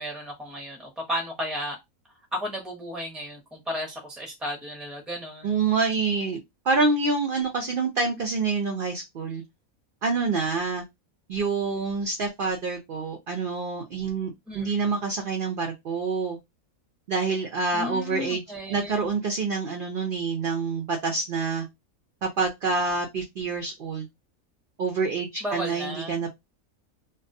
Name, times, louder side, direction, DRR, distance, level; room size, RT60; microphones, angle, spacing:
voice 1, 0.0-1.8 2.3-5.6 14.5-14.8 17.7-19.1 25.4-26.2, equal, ahead, 0.6 m, -34 dB
voice 2, 5.4-6.4 6.7-9.4 10.0-10.8 11.3-16.4 17.1-18.4 18.7-21.7 22.2-24.1 24.8-26.3, right 4 dB, 65° right, 0.5 m, -27 dB
2.3 x 2.2 x 2.5 m
omnidirectional pair, 1.5 m